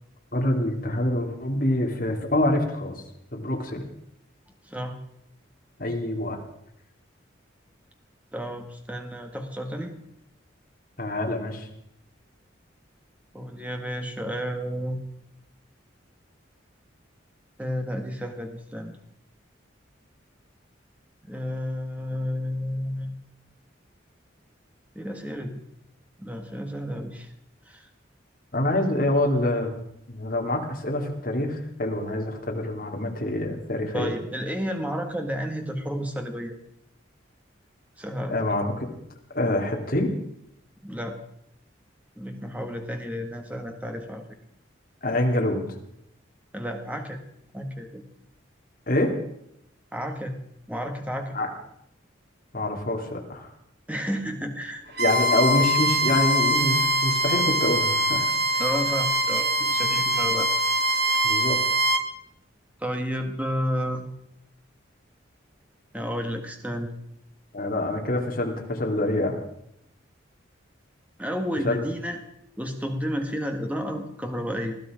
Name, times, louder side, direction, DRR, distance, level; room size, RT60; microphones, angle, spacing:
voice 1, 0.3-3.0 3.3-3.8 5.8-6.4 11.0-11.7 28.5-29.7 30.1-34.1 38.3-38.9 39.3-40.1 45.0-45.6 48.9-49.1 51.3-51.5 52.5-53.5 55.0-58.3 61.2-61.6 67.5-69.4 71.6-71.8, left 1 dB, 45° left, 1 dB, 2.9 m, -26 dB
voice 2, 4.7-5.0 8.3-9.9 13.3-15.0 17.6-18.9 21.2-23.1 24.9-25.6 26.2-27.3 27.7-27.9 33.9-36.5 38.0-38.3 40.8-41.2 42.2-44.2 46.5-47.2 47.5-48.0 49.9-50.3 50.7-51.4 53.9-54.8 58.6-60.5 62.8-64.0 65.9-66.9 71.2-72.2 72.6-74.8, equal, 5° right, 4 dB, 1.6 m, -31 dB
Bowed string instrument, 54.9-62.0, right 1 dB, 55° right, 1.6 m, -23 dB
20.5 x 13.5 x 5.1 m, 0.77 s
head